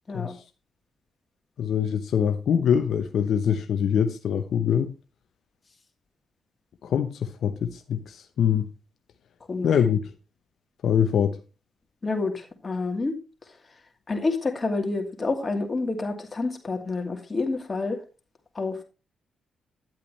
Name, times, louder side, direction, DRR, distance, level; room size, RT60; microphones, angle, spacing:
voice 1, 1.6-4.9 6.8-8.7 9.6-10.0 10.8-11.4, left 8 dB, 70° left, 0.8 m, -24 dB
voice 2, 12.0-13.1 14.1-18.0 18.5-18.8, left 3 dB, 35° left, 2.5 m, -28 dB
10.5 x 8.2 x 3.2 m
supercardioid pair, 55°, 0 cm